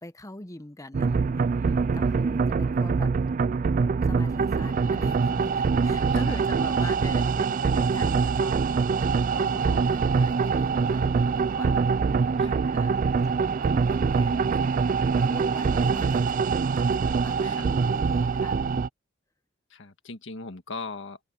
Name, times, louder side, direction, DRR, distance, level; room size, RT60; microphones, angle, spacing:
voice 1, 0.0-3.1 4.0-8.6 8.9-11.9 12.6-14.7 15.1-16.6 17.2-18.7, left 1 dB, 15° left, 1.0 m, -43 dB
sound 1, 0.9-18.9, right 5 dB, 40° right, 0.4 m, -24 dB
voice 2, 1.8-2.3 6.1-6.4 12.3-12.9 16.8-17.7 19.7-21.2, left 3 dB, 65° left, 1.7 m, -41 dB
head